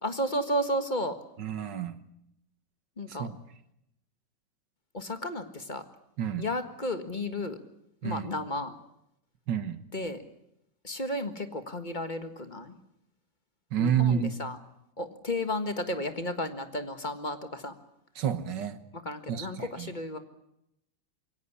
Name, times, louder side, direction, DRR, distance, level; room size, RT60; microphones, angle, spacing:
voice 1, 0.0-1.1 3.0-3.3 4.9-5.8 6.4-7.6 8.0-8.7 9.9-10.2 10.8-12.8 13.8-14.6 15.0-17.7 19.0-20.2, left 1 dB, 25° left, 8 dB, 1.6 m, -33 dB
voice 2, 1.4-2.0 3.1-3.4 6.2-6.5 8.0-8.3 9.5-9.8 13.7-14.4 18.2-18.8 19.3-19.9, right 8 dB, 65° right, 12 dB, 1.8 m, -29 dB
23.0 x 17.5 x 9.9 m, 0.81 s
omnidirectional pair, 2.1 m